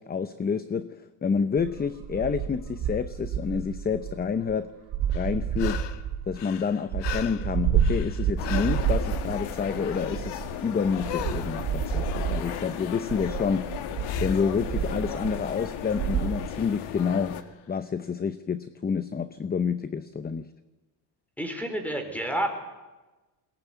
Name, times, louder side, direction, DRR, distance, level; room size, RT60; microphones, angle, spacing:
voice 1, 0.0-4.7 5.1-5.8 6.3-13.7 14.2-17.4 17.7-20.5, left 6 dB, 20° left, 12 dB, 0.7 m, -28 dB
sound 1, 1.6-4.5 4.9-6.4 6.7-10.6 10.8-12.6 13.1-16.5, right 8 dB, 70° right, 3.6 m, -30 dB
sound 2, 5.1-6.1 6.3-8.9 11.0-11.6 14.0-14.5 17.4-17.5, left 10 dB, 65° left, 1.4 m, -37 dB
sound 3, 8.4-17.4, left 10 dB, 90° left, 2.0 m, -36 dB
voice 2, 21.4-22.5, right 1 dB, 5° left, 6 dB, 4.4 m, -29 dB
21.5 x 19.0 x 9.3 m, 1.1 s
cardioid pair, 135°, 47 cm